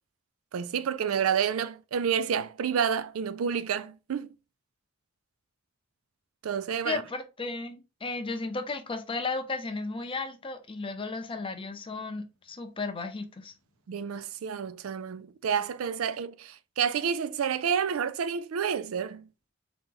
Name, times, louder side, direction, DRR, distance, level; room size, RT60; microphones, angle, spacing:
voice 1, 0.5-4.3 6.4-7.0 13.9-19.3, right 7 dB, 85° right, 0.4 m, -29 dB
voice 2, 6.8-13.5, left 3 dB, 25° left, 0.6 m, -34 dB
4.0 x 2.9 x 3.7 m
head